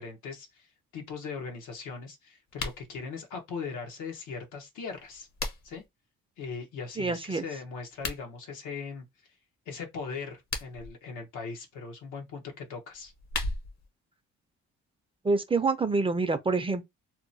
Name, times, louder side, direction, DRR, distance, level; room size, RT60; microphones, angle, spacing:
voice 1, 0.0-5.3 5.6-5.8 6.4-9.0 9.7-13.1, left 5 dB, 90° left, 1.0 m, -39 dB
sound 1, 2.5-2.9 4.9-5.9 7.9-8.2 10.3-10.9 12.9-13.9, left 3 dB, 65° left, 0.9 m, -36 dB
voice 2, 7.0-7.4 15.2-16.8, right 3 dB, 20° right, 0.4 m, -26 dB
2.9 x 2.1 x 2.6 m
cardioid pair, 90°, 30 cm